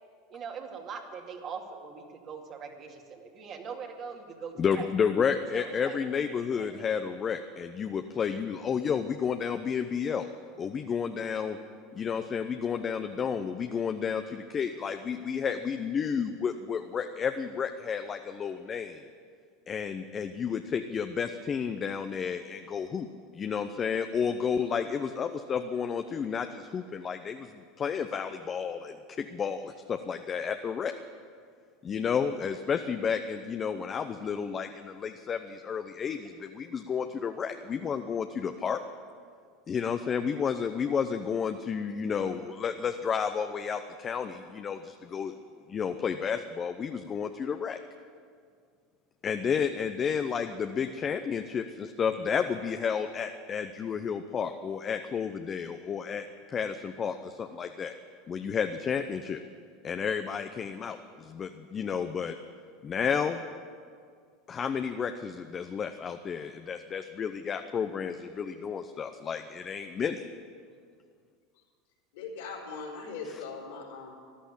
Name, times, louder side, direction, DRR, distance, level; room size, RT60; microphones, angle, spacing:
voice 1, 0.3-4.9 5.5-6.0 6.6-6.9, right 6 dB, 45° right, 2 dB, 2.3 m, -42 dB
voice 2, 4.6-10.3 10.6-11.6 11.9-19.0 19.7-23.1 23.3-30.9 31.8-38.8 39.7-45.4 45.7-47.8 49.2-57.9 58.3-59.4 59.8-62.4 62.8-63.4 64.5-70.3 73.2-73.4, left 6 dB, 35° left, 7 dB, 0.7 m, -31 dB
voice 3, 72.1-74.1, left 4 dB, 75° left, -2 dB, 4.5 m, -40 dB
14.0 x 11.5 x 8.8 m, 2.1 s
hypercardioid pair, 90°, 0 cm